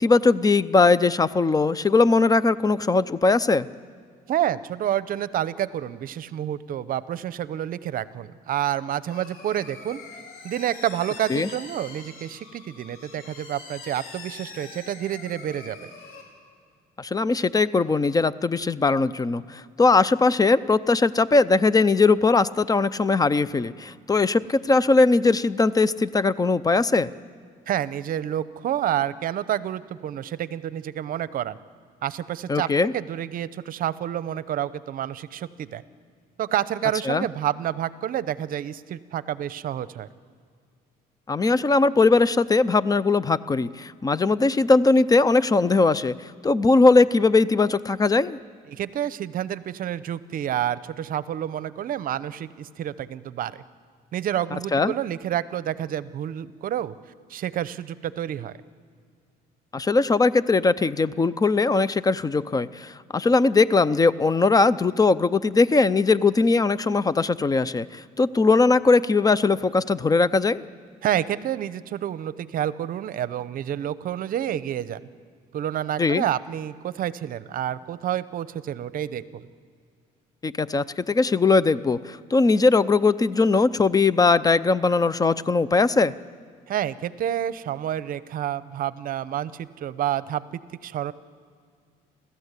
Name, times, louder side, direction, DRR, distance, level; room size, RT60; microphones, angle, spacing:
voice 1, 0.0-3.7 11.3-11.5 17.0-27.1 32.5-32.9 37.1-37.3 41.3-48.4 54.7-54.9 59.7-70.6 76.0-76.2 80.4-86.1, left 3 dB, 20° left, 17 dB, 0.6 m, -20 dB
voice 2, 4.3-10.0 10.4-15.9 27.7-31.6 32.0-35.8 36.4-40.1 48.7-53.6 54.1-56.9 57.3-58.6 71.0-75.0 75.5-79.5 86.7-91.1, right 11 dB, 55° right, 16 dB, 0.7 m, -29 dB
sound 1, 9.1-16.2, left 4 dB, 65° left, 4.8 m, -43 dB
29.5 x 13.5 x 8.3 m, 2.1 s
cardioid pair, 110°, 17 cm